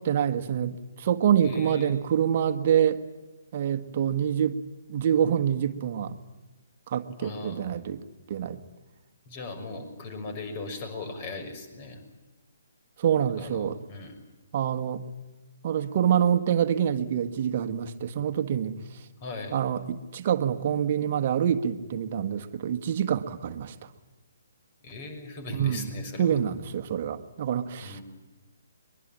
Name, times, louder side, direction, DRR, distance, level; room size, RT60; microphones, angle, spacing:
voice 1, 0.0-3.0 3.5-4.6 4.9-6.2 6.9-8.0 8.3-8.6 13.0-13.8 14.5-15.1 15.6-18.8 19.5-23.7 25.5-25.9 26.2-28.0, right 9 dB, 40° right, 9 dB, 1.6 m, -26 dB
voice 2, 1.4-2.0 7.2-7.7 9.3-12.0 13.4-14.2 19.2-19.6 24.8-26.4 27.8-28.0, left 3 dB, 35° left, 8 dB, 6.1 m, -39 dB
23.5 x 22.0 x 8.8 m, 1.1 s
figure-of-eight pair, 135°, 0 cm